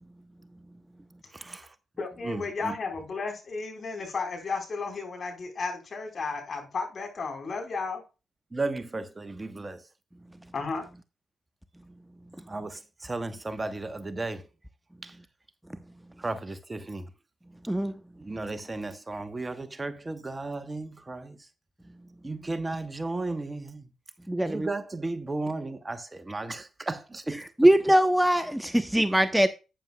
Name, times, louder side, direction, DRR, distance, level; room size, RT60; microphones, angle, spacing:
voice 1, 1.3-1.7 2.2-2.8 8.5-9.8 12.5-14.5 15.0-15.1 16.2-17.1 18.2-21.4 22.2-23.8 24.5-27.4, right 2 dB, 25° right, 1.1 m, -34 dB
voice 2, 2.0-8.0 10.5-10.8, left 4 dB, 50° left, 4.4 m, -33 dB
voice 3, 24.3-24.7 27.6-29.5, right 1 dB, 10° right, 0.9 m, -22 dB
11.5 x 9.1 x 2.3 m
hypercardioid pair, 40°, 0 cm